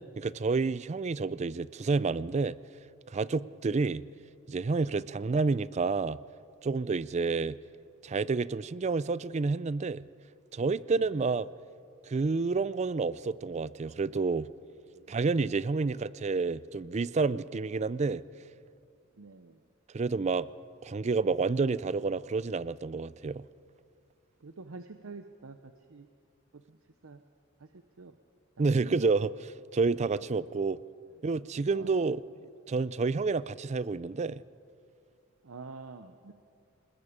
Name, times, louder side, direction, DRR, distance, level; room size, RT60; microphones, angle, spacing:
voice 1, 0.0-2.6 3.1-4.0 4.5-6.2 6.6-7.6 8.0-10.0 10.5-11.5 12.1-14.5 15.1-18.2 19.9-20.5 20.8-23.4 28.6-30.8 31.2-32.2 32.7-34.4, right 4 dB, 35° right, 0.4 m, -29 dB
voice 2, 10.9-11.3 14.9-15.2 15.8-15.9 19.2-19.6 24.4-26.1 26.5-26.8 27.0-27.2 27.6-28.1 28.6-29.0 31.7-32.1 35.4-36.3, right 3 dB, 90° right, 0.8 m, -47 dB
27.5 x 20.0 x 5.0 m
head